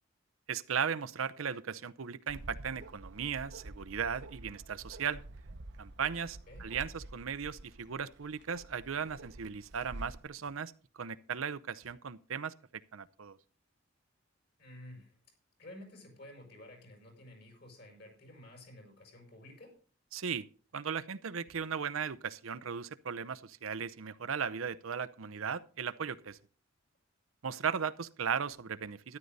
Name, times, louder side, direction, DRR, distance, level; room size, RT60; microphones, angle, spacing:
voice 1, 0.5-5.2 5.8-13.4 20.1-20.5 20.7-26.4 27.4-29.2, right 7 dB, 90° right, 0.7 m, -37 dB
Bark, 2.3-10.3, right 2 dB, 60° right, 0.8 m, -49 dB
voice 2, 14.6-15.2 15.6-19.8, left 1 dB, 55° left, 6.4 m, -52 dB
13.0 x 11.0 x 4.1 m
head